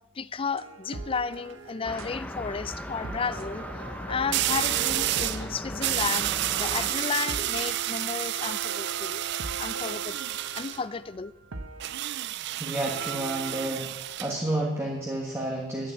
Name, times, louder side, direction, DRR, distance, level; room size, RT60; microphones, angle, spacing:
voice 1, 0.2-3.7 4.1-6.3 6.6-9.2 9.6-10.2 10.5-11.3, left 5 dB, 25° left, 0.4 m, -33 dB
sound 1, 0.6-2.1 2.7-7.8 8.2-12.3, right 3 dB, 80° right, 1.0 m, -42 dB
sound 2, 1.2-1.5 4.3-5.5 5.8-10.8 11.8-14.4, right 14 dB, 55° right, 0.3 m, -30 dB
sound 3, 1.8-6.9, left 1 dB, 5° left, 0.8 m, -38 dB
voice 2, 12.6-13.9 14.2-15.9, right 1 dB, 15° right, 1.5 m, -30 dB
11.0 x 9.1 x 8.3 m
head